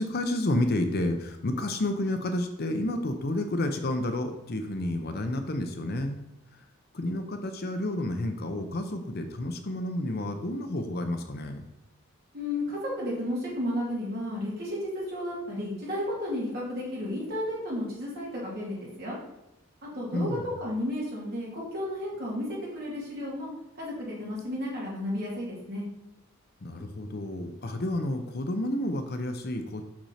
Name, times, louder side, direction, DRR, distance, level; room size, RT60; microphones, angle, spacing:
voice 1, 0.0-6.2 6.9-11.6 20.1-20.5 26.6-29.8, left 1 dB, 45° left, 6 dB, 0.6 m, -30 dB
voice 2, 12.3-19.2 19.8-20.3 20.6-23.5 23.8-25.8, left 1 dB, 45° right, -6 dB, 2.9 m, -33 dB
6.1 x 6.1 x 4.2 m, 0.92 s
head